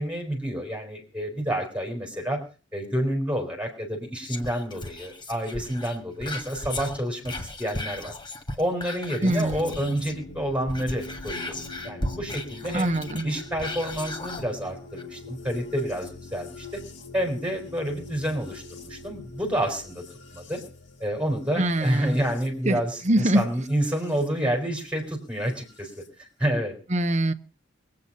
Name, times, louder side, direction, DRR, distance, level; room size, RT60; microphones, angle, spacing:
voice 1, 0.0-2.4 2.7-8.1 8.6-11.6 11.8-12.9 13.2-16.8 17.1-20.0 20.3-20.6 21.0-25.9 26.2-26.7, equal, 5° right, 4.0 m, -29 dB
Whispering, 4.2-10.2 10.6-14.5 15.0-15.1, left 1 dB, 25° left, 1.7 m, -36 dB
sound 1, 9.2-24.3 25.4-26.1, left 3 dB, 70° left, 2.6 m, -44 dB
voice 2, 9.2-9.8 12.7-13.3 21.6-22.2 22.7-23.4 26.9-27.3, right 1 dB, 40° right, 0.9 m, -24 dB
23.0 x 8.7 x 5.4 m
head